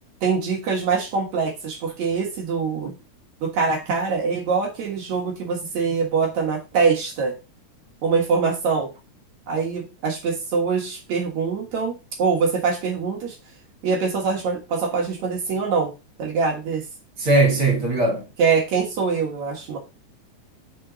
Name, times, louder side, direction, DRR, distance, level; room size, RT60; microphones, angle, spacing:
voice 1, 0.2-2.9 3.4-7.3 8.0-8.9 9.5-13.4 13.8-15.9 16.2-16.8 18.4-19.8, right 5 dB, 70° right, 2.8 m, -23 dB
voice 2, 17.2-18.2, right 2 dB, 45° right, 3.1 m, -19 dB
6.2 x 3.9 x 6.0 m
omnidirectional pair, 3.3 m